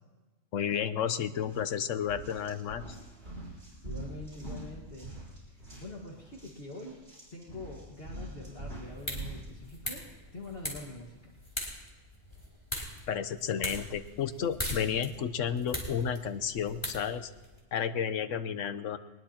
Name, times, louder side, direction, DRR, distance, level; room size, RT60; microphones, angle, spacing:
voice 1, 0.5-2.8 13.1-17.3 17.7-19.0, left 8 dB, 85° left, 11 dB, 1.1 m, -32 dB
sound 1, 1.4-1.6 2.0-9.5, right 1 dB, 60° right, 6.1 m, -44 dB
voice 2, 3.8-5.1 5.5-7.0 7.3-11.3, left 2 dB, 50° left, -2 dB, 2.0 m, -45 dB
sound 2, 8.7-17.6, equal, 20° left, 3.1 m, -41 dB
21.5 x 20.0 x 2.9 m, 1.2 s
omnidirectional pair, 1.3 m